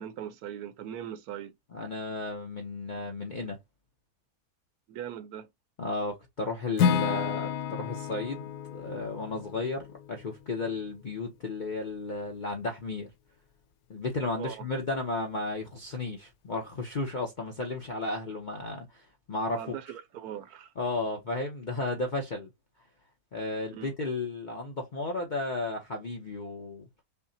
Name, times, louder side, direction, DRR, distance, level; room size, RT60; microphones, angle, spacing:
voice 1, 0.0-1.5 4.9-5.5 14.4-14.7 19.5-20.7 23.7-23.9, right 10 dB, 75° right, 1.1 m, -40 dB
voice 2, 1.7-3.6 5.8-13.1 13.9-19.7 20.8-22.5 23.3-26.9, left 2 dB, 50° left, 0.5 m, -34 dB
Acoustic guitar / Strum, 6.8-10.8, left 7 dB, 90° left, 1.2 m, -31 dB
5.6 x 2.0 x 2.6 m
omnidirectional pair, 1.7 m